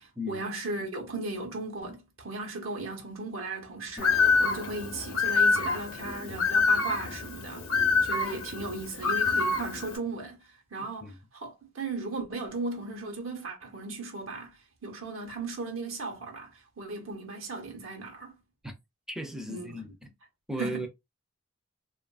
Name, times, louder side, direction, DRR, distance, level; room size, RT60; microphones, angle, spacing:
voice 1, 0.0-7.7 8.0-16.5 16.8-18.3 19.5-19.7 20.6-20.9, right 3 dB, 80° right, 0.9 m, -37 dB
Bird, 4.0-10.0, left 4 dB, 85° left, 0.7 m, -26 dB
voice 2, 10.8-11.2 18.6-18.7 19.1-20.1 20.5-20.9, equal, 5° right, 0.5 m, -37 dB
2.9 x 2.4 x 2.3 m
head